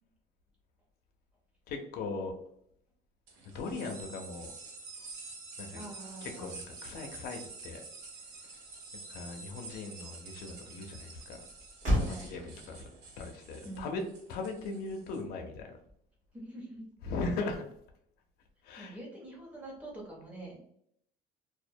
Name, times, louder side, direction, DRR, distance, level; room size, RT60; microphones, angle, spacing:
voice 1, 1.7-2.3 3.4-4.5 5.6-5.8 6.2-7.8 9.1-11.4 12.1-12.9 13.2-14.0 14.3-15.7 17.0-17.6 18.6-19.0, left 3 dB, 60° left, 3 dB, 0.5 m, -39 dB
sound 1, 3.3-15.2, right 3 dB, 85° right, 0.7 m, -48 dB
voice 2, 5.7-6.6 12.0-12.4 13.6-14.1 16.3-16.8 18.8-20.7, right 2 dB, 10° right, -4 dB, 0.7 m, -45 dB
Motor vehicle (road), 8.0-16.4, equal, 40° right, 0.9 m, -39 dB
2.2 x 2.1 x 2.6 m, 0.70 s
cardioid pair, 175°, 18 cm